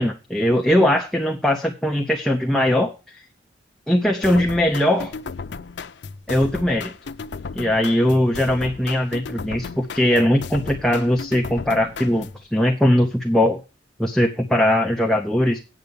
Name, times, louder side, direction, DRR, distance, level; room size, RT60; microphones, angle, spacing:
voice 1, 0.0-3.2 3.9-5.2 6.3-6.9 7.5-13.6 14.0-15.6, left 1 dB, ahead, 1 dB, 0.8 m, -20 dB
sound 1, 4.2-12.4, left 4 dB, 75° left, 0.6 m, -35 dB
8.2 x 7.4 x 7.0 m, 0.32 s
head